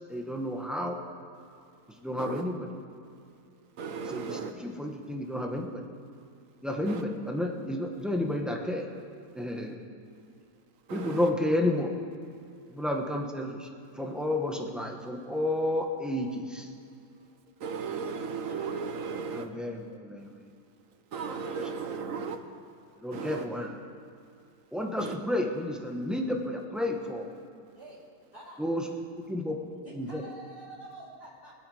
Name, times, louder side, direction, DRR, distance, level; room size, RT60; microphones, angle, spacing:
voice 1, 0.1-1.0 2.0-2.8 4.0-5.8 6.6-8.9 9.3-9.8 10.9-11.9 12.7-13.7 14.0-16.7 19.1-20.3 21.4-21.7 22.1-22.3 23.0-23.8 24.7-27.3 28.6-28.9 29.3-29.5 29.9-30.2, left 1 dB, ahead, 1 dB, 0.9 m, -31 dB
voice 2, 3.8-4.5 6.9-7.0 10.9-11.3 17.6-19.5 21.1-22.4 23.1-23.4 25.0-25.1, right 5 dB, 60° right, 7 dB, 1.2 m, -35 dB
voice 3, 23.2-23.7 27.8-28.0 28.3-28.6 29.8-31.5, right 2 dB, 35° left, -8 dB, 4.2 m, -48 dB
23.5 x 8.3 x 4.9 m, 2.4 s
omnidirectional pair, 1.7 m